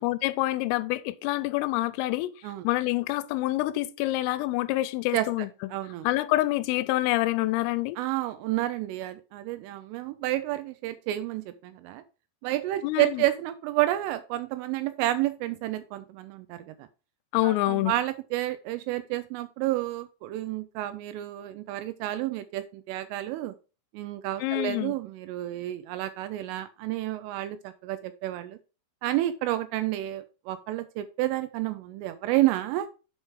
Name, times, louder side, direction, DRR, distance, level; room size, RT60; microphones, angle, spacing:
voice 1, 0.0-2.3 2.6-5.5 6.0-8.0 12.8-13.2 17.3-17.9 24.4-25.0, left 17 dB, 85° left, 3.1 m, -27 dB
voice 2, 5.7-6.1 8.0-12.0 12.4-16.9 17.4-23.5 23.9-28.6 29.0-32.9, right 15 dB, 80° right, 3.0 m, -30 dB
8.1 x 5.7 x 4.7 m
omnidirectional pair, 6.0 m